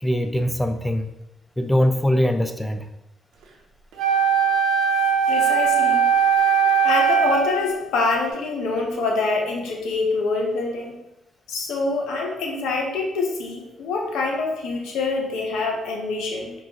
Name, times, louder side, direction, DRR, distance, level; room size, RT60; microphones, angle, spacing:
voice 1, 0.0-1.1 1.6-2.8, equal, 10° left, 7 dB, 0.5 m, -22 dB
Wind instrument woodwind instrument, 4.0-7.8, right 6 dB, 80° right, 0.8 m, -19 dB
voice 2, 5.3-6.1 6.8-11.0 11.5-16.5, left 3 dB, 80° left, 1 dB, 0.8 m, -25 dB
5.3 x 2.9 x 2.9 m, 0.93 s
supercardioid pair, 65°, 0 cm